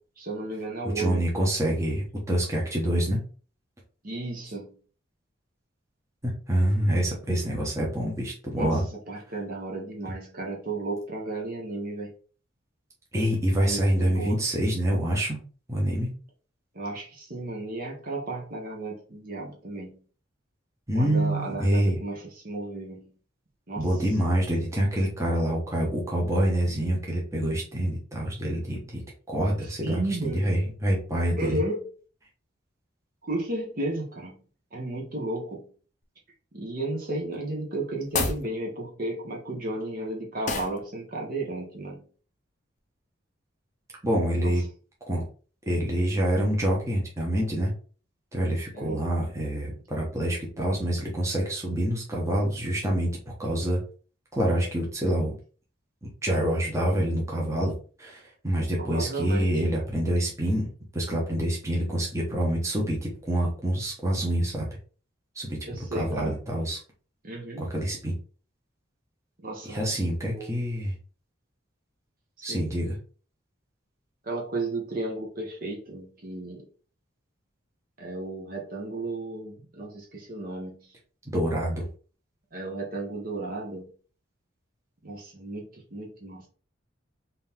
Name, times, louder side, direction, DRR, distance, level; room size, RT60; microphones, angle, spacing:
voice 1, 0.2-1.3 4.0-4.8 8.6-8.8 9.1-12.2 13.6-14.4 16.7-20.0 20.9-23.1 23.7-23.9 29.6-30.5 31.3-31.9 33.2-34.4 34.7-35.7 36.5-42.0 44.4-44.6 48.7-49.0 58.8-59.6 65.6-66.4 67.2-67.7 69.4-69.8 70.2-70.5 72.4-72.7 74.2-76.7 78.0-80.9 82.5-83.9 85.0-86.5, right 2 dB, 45° right, 1.0 m, -34 dB
voice 2, 1.0-3.2 6.2-8.8 13.1-15.4 15.7-16.1 20.9-22.0 23.8-29.0 29.3-31.6 44.0-44.6 45.1-45.2 45.7-47.7 48.3-53.1 53.4-53.8 54.3-55.3 56.0-57.7 58.0-60.7 60.9-64.7 65.4-65.6 65.9-66.8 67.6-68.1 69.7-70.9 72.4-73.0 81.3-81.9, right 1 dB, 15° right, 1.0 m, -26 dB
sound 1, 38.0-38.5 40.5-40.8, left 3 dB, 40° left, 0.6 m, -28 dB
3.9 x 2.8 x 3.6 m
head